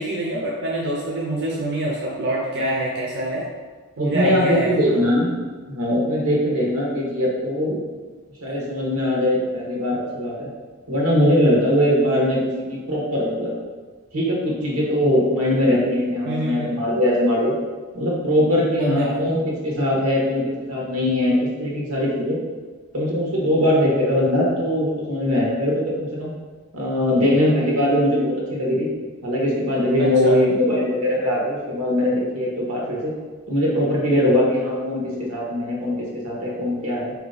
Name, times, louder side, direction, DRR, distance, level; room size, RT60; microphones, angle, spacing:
voice 1, 0.0-3.5 4.0-5.0 16.2-16.8 18.8-19.2 30.0-30.4, right 1 dB, 55° right, -4 dB, 0.6 m, -25 dB
voice 2, 4.0-5.3 5.7-7.8 8.4-10.5 10.9-13.5 14.1-17.5 17.9-22.4 22.9-26.3 26.7-28.9 29.2-33.1 33.5-36.0 36.2-37.1, left 1 dB, 90° right, -4 dB, 1.3 m, -21 dB
4.2 x 3.0 x 3.9 m, 1.4 s
head